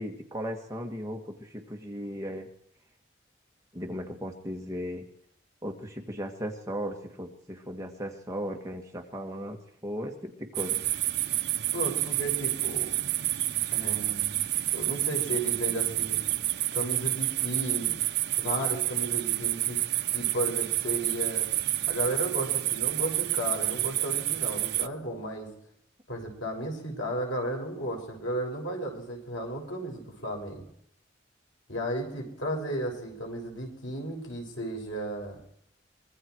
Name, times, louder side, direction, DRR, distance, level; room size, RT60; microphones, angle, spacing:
voice 1, 0.0-2.5 3.7-5.1 5.6-10.8, equal, 15° right, 2 dB, 2.0 m, -36 dB
sound 1, 10.5-24.9, right 15 dB, 60° right, 0.8 m, -29 dB
voice 2, 11.7-12.9 13.7-14.4 14.7-16.2 16.7-18.0 18.4-19.8 20.1-21.5 21.9-25.5 26.1-30.6 31.7-35.4, right 1 dB, 90° left, 1 dB, 6.6 m, -34 dB
24.5 x 22.0 x 4.8 m, 0.71 s
head